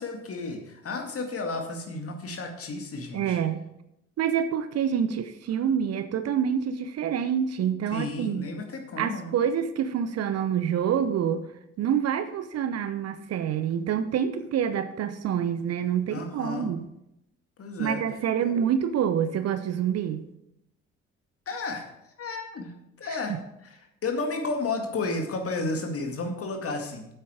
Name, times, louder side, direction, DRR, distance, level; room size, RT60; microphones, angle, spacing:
voice 1, 0.0-3.4 7.9-9.4 16.1-16.7 17.6-18.0 18.4-18.5 21.5-27.1, left 3 dB, 40° left, 4 dB, 2.1 m, -33 dB
voice 2, 3.1-3.6 4.2-8.4 9.0-11.5 11.8-16.8 17.8-20.3 23.3-23.4, right 8 dB, 45° right, 11 dB, 0.8 m, -27 dB
8.9 x 8.7 x 4.9 m, 0.81 s
figure-of-eight pair, 45°, 36 cm